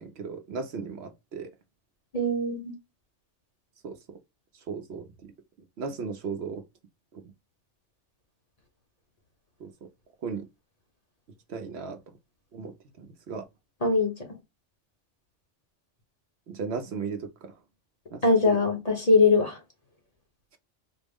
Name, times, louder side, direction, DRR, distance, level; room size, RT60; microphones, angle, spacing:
voice 1, 0.0-1.5 3.8-4.2 4.7-5.1 5.8-6.6 9.6-9.7 10.2-10.5 11.5-12.0 12.5-13.4 16.5-17.5 18.1-18.6, right 5 dB, 65° right, 0.8 m, -36 dB
voice 2, 2.1-2.7 13.8-14.2 18.2-19.6, left 3 dB, 35° left, 0.9 m, -22 dB
4.1 x 2.0 x 3.5 m
omnidirectional pair, 1.2 m